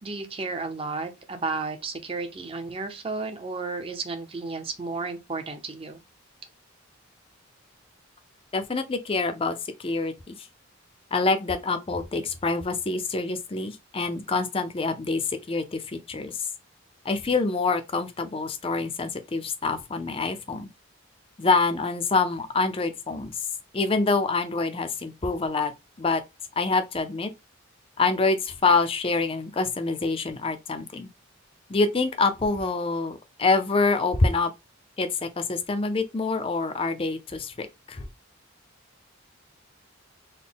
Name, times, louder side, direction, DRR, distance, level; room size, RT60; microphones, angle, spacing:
voice 1, 0.0-6.0, right 3 dB, 25° right, 0.6 m, -33 dB
voice 2, 8.5-10.5 11.1-16.5 17.0-20.7 21.4-23.4 23.7-25.7 26.0-26.2 26.6-27.3 28.0-31.1 31.7-34.5 35.0-38.1, left 3 dB, 25° left, 0.5 m, -26 dB
4.0 x 2.1 x 3.4 m
head